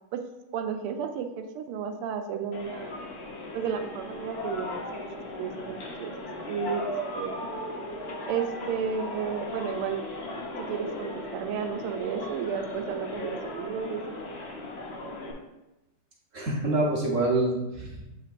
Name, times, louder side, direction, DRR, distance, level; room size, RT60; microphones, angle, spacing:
voice 1, 0.5-3.0 3.5-4.8 5.4-6.1 6.5-6.8 7.1-7.6 8.3-10.0 10.6-14.2, right 7 dB, 85° right, 6 dB, 1.6 m, -32 dB
sound 1, 2.5-15.3, left 1 dB, 50° left, 1.3 m, -37 dB
voice 2, 16.3-18.0, right 2 dB, 45° right, -2 dB, 1.2 m, -26 dB
7.8 x 5.8 x 2.5 m, 0.99 s
omnidirectional pair, 2.4 m